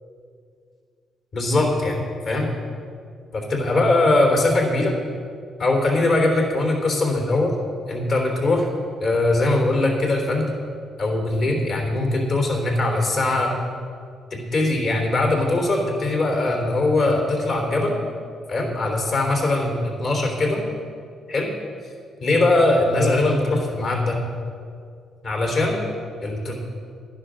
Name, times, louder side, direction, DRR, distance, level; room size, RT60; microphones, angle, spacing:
voice 1, 1.3-2.5 3.3-4.9 5.6-7.6 7.9-8.7 9.0-10.5 11.0-13.5 14.3-18.0 18.5-20.6 21.3-21.5 22.2-24.2 25.2-25.8 26.2-26.5, left 2 dB, 60° left, 1 dB, 3.5 m, -21 dB
11.5 x 9.9 x 6.4 m, 2.3 s
cardioid pair, 90°, 0 cm